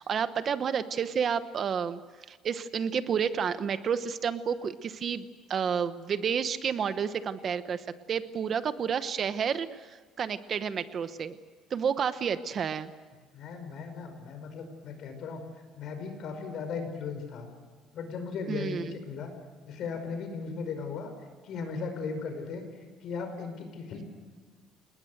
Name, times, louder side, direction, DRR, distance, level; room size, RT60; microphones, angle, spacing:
voice 1, 0.0-2.0 2.3-5.2 5.5-11.4 11.7-12.9 18.5-18.8, right 7 dB, 35° right, 12 dB, 1.0 m, -30 dB
voice 2, 13.3-15.4 15.7-17.5 17.9-19.3 19.6-21.1 21.4-22.7 23.0-24.0, left 5 dB, 50° left, 7 dB, 5.3 m, -37 dB
27.5 x 20.0 x 7.9 m, 1.4 s
cardioid pair, 150°, 0 cm